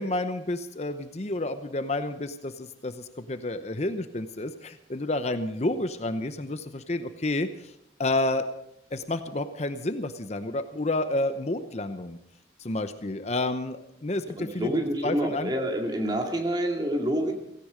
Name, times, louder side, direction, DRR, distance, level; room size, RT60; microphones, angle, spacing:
voice 1, 0.0-7.7 8.0-8.4 8.9-12.2 12.6-14.7 15.0-15.5, left 2 dB, 35° left, 10 dB, 0.8 m, -30 dB
voice 2, 14.4-17.3, right 1 dB, 25° right, 2 dB, 2.5 m, -27 dB
17.0 x 16.5 x 5.1 m, 0.77 s
head